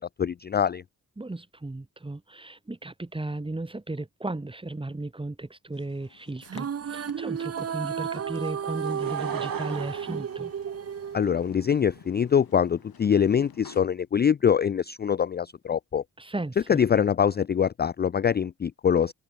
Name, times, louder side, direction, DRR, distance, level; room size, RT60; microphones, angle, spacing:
voice 1, 0.2-0.8 11.1-16.0 16.7-19.1, left 8 dB, 30° left, 0.4 m, -24 dB
voice 2, 1.2-10.5 16.2-16.8, right 2 dB, 15° right, 1.5 m, -35 dB
sound 1, 5.7-13.8, left 8 dB, 75° left, 7.8 m, -53 dB
sound 2, 6.4-11.9, right 8 dB, 40° right, 0.8 m, -33 dB
Laughter / Crowd, 8.7-11.3 12.0-12.1, right 8 dB, 65° right, 4.7 m, -38 dB
open air
cardioid pair, 75°, 36 cm